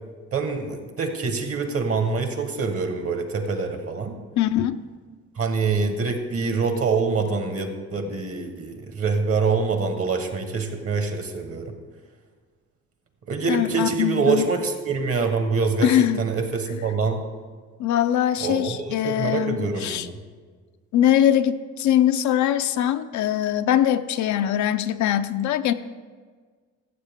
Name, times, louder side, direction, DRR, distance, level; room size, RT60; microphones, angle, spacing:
voice 1, 0.3-4.2 5.3-11.8 13.3-17.2 18.4-20.2, right 4 dB, 50° right, 6 dB, 1.4 m, -25 dB
voice 2, 4.4-4.8 13.5-14.5 15.8-16.2 16.7-16.8 17.8-20.1 20.9-25.7, left 11 dB, 70° left, 10 dB, 0.5 m, -22 dB
14.5 x 7.4 x 3.6 m, 1.5 s
cardioid pair, 90°, 30 cm